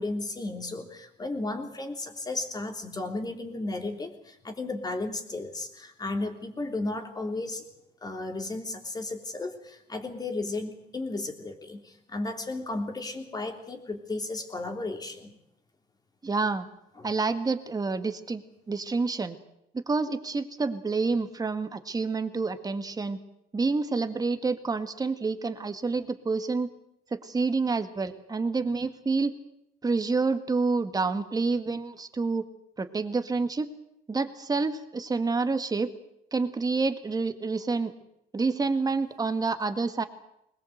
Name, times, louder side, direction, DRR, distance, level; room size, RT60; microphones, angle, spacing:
voice 1, 0.0-7.6 8.0-15.4 17.0-17.1, left 2 dB, 25° left, 4 dB, 3.5 m, -34 dB
voice 2, 16.2-16.7 17.0-19.4 19.9-23.2 23.5-26.7 27.1-29.3 29.8-32.4 32.8-33.7 34.1-35.9 36.3-37.9 38.3-40.0, right 4 dB, 20° right, 9 dB, 1.9 m, -28 dB
21.5 x 20.5 x 8.0 m, 0.80 s
cardioid pair, 110°, 17 cm